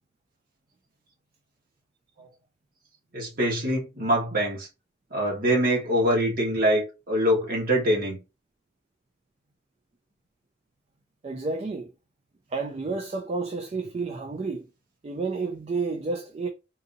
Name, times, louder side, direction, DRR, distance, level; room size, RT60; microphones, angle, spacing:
voice 1, 3.1-4.7 5.1-8.2, equal, 45° right, 1.5 m, -24 dB
voice 2, 11.2-11.9 12.5-14.7 15.0-16.5, right 3 dB, 30° right, 0.3 m, -30 dB
3.9 x 2.5 x 2.6 m
head